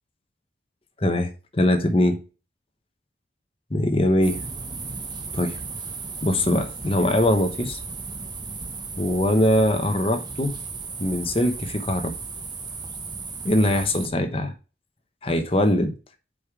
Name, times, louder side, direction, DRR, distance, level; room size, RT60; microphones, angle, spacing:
voice 1, 1.0-2.2 3.7-4.4 5.3-5.6 6.2-7.8 9.0-10.5 11.0-12.1 13.4-14.5 15.2-15.9, left 1 dB, 30° left, 1.0 m, -22 dB
sound 1, 4.2-14.1, right 4 dB, 25° right, 0.7 m, -35 dB
5.4 x 5.0 x 4.8 m
head